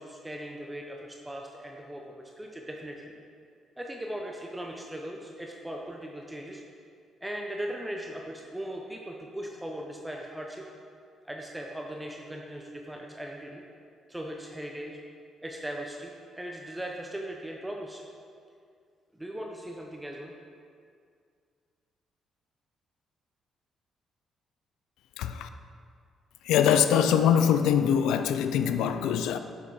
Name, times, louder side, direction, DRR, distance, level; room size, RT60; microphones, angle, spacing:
voice 1, 0.0-3.1 3.8-6.6 7.2-10.7 11.2-13.6 14.1-15.0 15.4-18.0 19.1-20.3, right 1 dB, 10° right, 0 dB, 0.7 m, -39 dB
voice 2, 25.2-25.5 26.4-29.4, left 8 dB, 90° left, 9 dB, 0.4 m, -23 dB
7.2 x 6.6 x 4.7 m, 2.2 s
cardioid pair, 90°, 0 cm